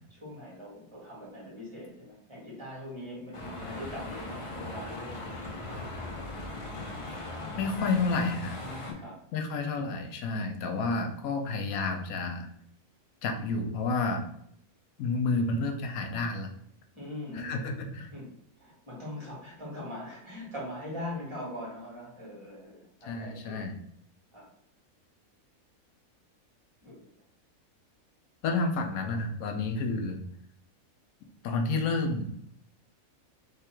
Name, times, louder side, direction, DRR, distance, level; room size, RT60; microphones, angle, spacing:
voice 1, 0.1-5.5 8.6-9.2 16.9-17.6 18.1-18.3 18.6-23.6 24.3-24.5 26.8-27.1, left 1 dB, 20° right, -6 dB, 1.9 m, -41 dB
sound 1, 3.3-8.9, left 2 dB, 30° left, 0.6 m, -39 dB
voice 2, 7.6-8.6 9.3-12.5 13.2-14.2 15.0-16.5 17.3-18.1 23.0-23.7 28.4-30.2 31.4-32.3, left 3 dB, 85° left, 5 dB, 1.1 m, -30 dB
3.5 x 3.4 x 4.4 m, 0.70 s
omnidirectional pair, 1.5 m